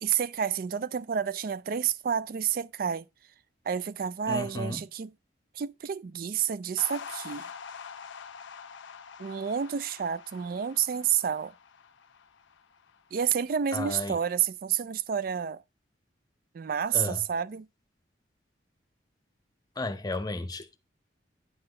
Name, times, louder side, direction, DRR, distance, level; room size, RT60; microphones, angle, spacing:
voice 1, 0.0-3.1 3.7-5.1 5.5-7.5 9.2-11.5 13.1-15.6 16.5-17.7, right 8 dB, 50° right, 0.3 m, -29 dB
voice 2, 4.3-4.8 13.7-14.2 16.9-17.2 19.8-20.8, left 2 dB, 20° left, 0.7 m, -33 dB
sound 1, 6.8-13.3, left 6 dB, 80° left, 0.6 m, -45 dB
9.8 x 3.9 x 3.8 m
head